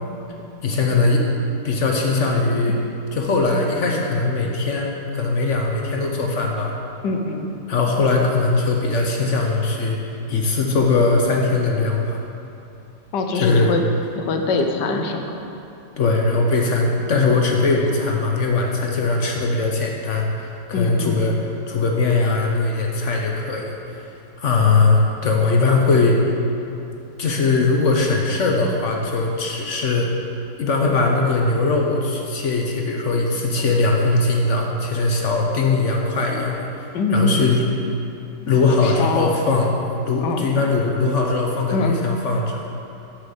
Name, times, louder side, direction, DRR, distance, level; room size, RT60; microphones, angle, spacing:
voice 1, 0.6-1.3 1.6-2.8 3.2-6.7 7.7-12.2 13.3-13.7 16.0-20.3 20.7-21.3 21.7-23.7 24.4-26.2 27.2-30.1 30.6-37.6 38.5-39.8 40.1-42.6, left 3 dB, 55° left, 0 dB, 0.9 m, -20 dB
voice 2, 7.0-7.5 13.1-13.8 14.2-15.4 20.7-21.2 36.9-37.4 38.8-39.3 40.2-40.5 41.7-42.0, left 3 dB, 75° left, 4 dB, 1.4 m, -23 dB
6.6 x 6.5 x 7.1 m, 2.7 s
omnidirectional pair, 1.9 m